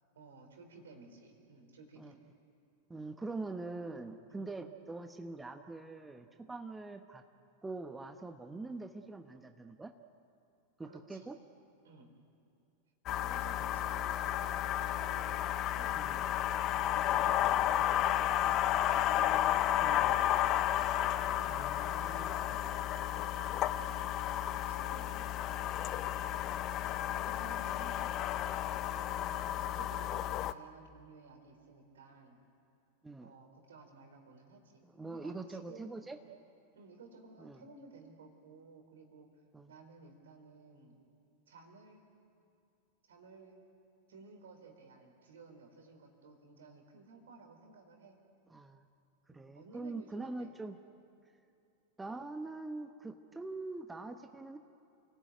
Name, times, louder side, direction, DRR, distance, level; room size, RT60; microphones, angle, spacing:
voice 1, 0.1-2.2 4.3-4.5 10.9-11.3 11.8-12.1 13.1-16.0 16.8-20.6 21.3-28.1 28.9-32.4 33.2-36.1 36.7-39.3 39.7-41.0 41.5-42.1 43.1-43.6 44.1-48.2 49.3-50.5, right 3 dB, 65° right, 5 dB, 4.2 m, -56 dB
voice 2, 2.9-7.2 7.6-9.9 10.8-11.4 13.6-14.0 15.9-16.2 19.8-20.2 21.5-22.3 33.0-33.3 34.8-36.2 37.4-37.6 39.5-39.7 48.5-48.8 49.3-50.8 52.0-54.6, right 3 dB, 10° right, 7 dB, 1.0 m, -44 dB
sound 1, 13.1-30.5, left 12 dB, 35° left, 0.7 m, -32 dB
29.5 x 17.5 x 9.2 m, 2.6 s
figure-of-eight pair, 90°, 0 cm